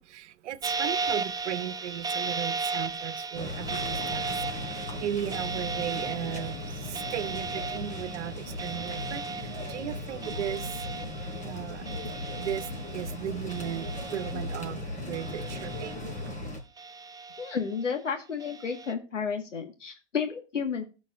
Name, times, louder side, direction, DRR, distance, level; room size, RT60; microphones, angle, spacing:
voice 1, 0.0-10.9 11.4-11.9 12.3-16.4, right 11 dB, 70° right, 1.1 m, -36 dB
sound 1, 0.6-13.2 13.5-14.7 15.1-16.3 16.8-17.8 18.4-18.9, right 4 dB, 10° right, 0.8 m, -36 dB
sound 2, 3.3-16.6, left 1 dB, 20° left, 3.9 m, -37 dB
voice 2, 17.4-20.8, left 6 dB, 90° left, 2.0 m, -32 dB
16.0 x 6.2 x 2.7 m
hypercardioid pair, 100°, 36 cm